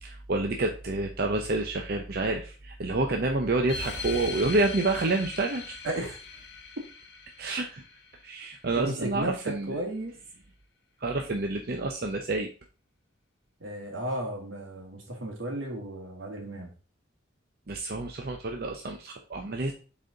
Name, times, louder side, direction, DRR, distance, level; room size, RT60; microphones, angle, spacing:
voice 1, 0.0-5.8 7.4-7.8 8.2-9.8 11.0-12.5 17.7-19.7, right 2 dB, 50° right, 3 dB, 0.7 m, -28 dB
sound 1, 3.7-8.7, left 4 dB, 55° left, 0.9 m, -40 dB
voice 2, 5.8-6.2 8.8-9.4 9.7-10.2 13.6-16.7, right 1 dB, 80° right, 1 dB, 2.1 m, -34 dB
6.5 x 4.2 x 3.8 m, 0.36 s
head